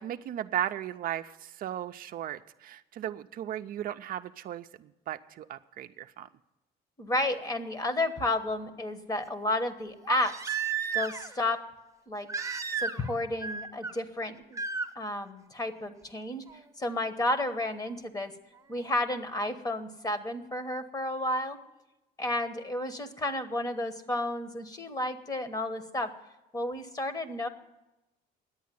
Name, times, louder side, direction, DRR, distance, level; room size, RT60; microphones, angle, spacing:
voice 1, 0.0-6.3, right 11 dB, 60° right, 9 dB, 0.5 m, -36 dB
voice 2, 7.0-10.4 10.9-11.7 12.1-12.3 12.8-14.6 14.9-16.4 16.8-18.3 18.7-21.6 22.2-26.1 26.5-27.5, left 1 dB, 20° left, 10 dB, 1.1 m, -31 dB
Crying sobbing, 7.3-7.4 10.0-11.4 12.3-13.1 13.4-13.9 14.5-14.9 16.5-16.6, right 6 dB, 20° right, 0.9 m, -33 dB
10.5 x 8.4 x 9.3 m, 0.97 s
cardioid pair, 110°, 17 cm